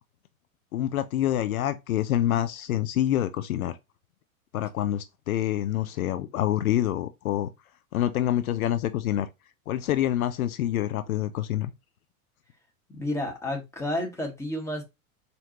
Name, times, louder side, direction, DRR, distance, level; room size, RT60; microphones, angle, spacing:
voice 1, 0.7-3.8 4.5-7.5 7.9-9.3 9.7-11.7, left 12 dB, 75° left, 0.6 m, -26 dB
voice 2, 12.9-14.8, left 1 dB, 5° left, 1.2 m, -31 dB
4.3 x 2.7 x 2.9 m
hypercardioid pair, 95°, 43 cm